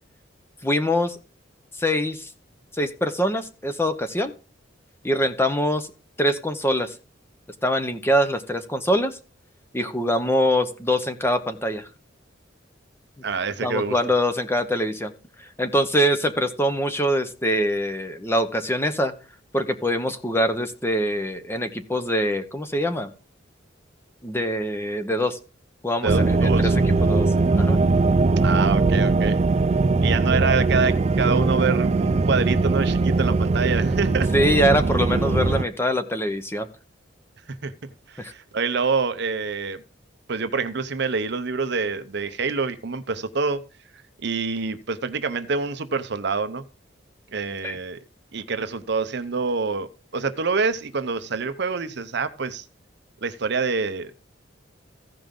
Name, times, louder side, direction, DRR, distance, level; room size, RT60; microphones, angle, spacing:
voice 1, 0.6-1.2 1.8-2.3 2.7-4.3 5.0-5.9 6.2-6.9 7.6-9.2 9.7-11.9 13.6-15.1 15.6-19.1 19.5-23.1 24.2-25.4 25.8-26.7 27.0-27.3 27.5-27.8 34.3-36.7 38.2-38.3 47.6-47.8, equal, 15° left, 9 dB, 0.9 m, -23 dB
voice 2, 13.2-14.0 26.0-26.7 28.4-29.4 30.0-34.3 37.6-37.7 38.1-39.8 40.3-43.6 44.2-46.6 47.3-48.0 48.3-52.6 53.2-54.1, right 4 dB, 60° right, 10 dB, 0.7 m, -26 dB
sound 1, 26.1-35.6, right 3 dB, 35° right, 0.4 m, -20 dB
15.5 x 5.3 x 3.8 m, 0.33 s
head